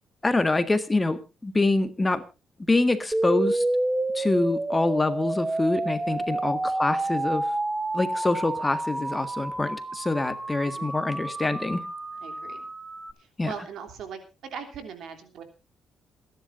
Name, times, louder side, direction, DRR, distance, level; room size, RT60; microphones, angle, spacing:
voice 1, 0.2-2.2 2.7-3.6 4.1-7.5 7.9-11.8 13.4-13.5, left 2 dB, 20° left, 10 dB, 1.7 m, -25 dB
sound 1, 3.1-13.1, right 2 dB, 15° right, 1.6 m, -29 dB
voice 2, 12.2-12.6 13.4-14.2 14.5-15.4, right 6 dB, 75° right, 6 dB, 3.1 m, -39 dB
27.0 x 11.0 x 2.6 m, 0.30 s
cardioid pair, 90°, 0 cm